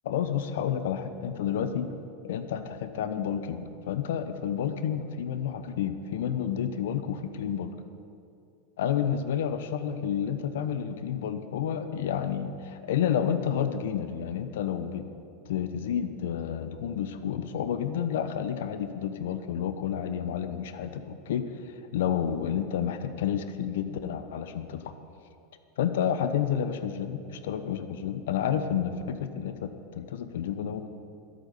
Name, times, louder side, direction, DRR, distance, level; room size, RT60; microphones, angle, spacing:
voice 1, 0.0-1.9 2.2-7.7 8.8-15.0 15.5-21.4 21.9-24.9 25.8-30.9, left 8 dB, 70° left, 10 dB, 1.0 m, -30 dB
12.5 x 8.4 x 9.7 m, 2.6 s
hypercardioid pair, 85°, 0 cm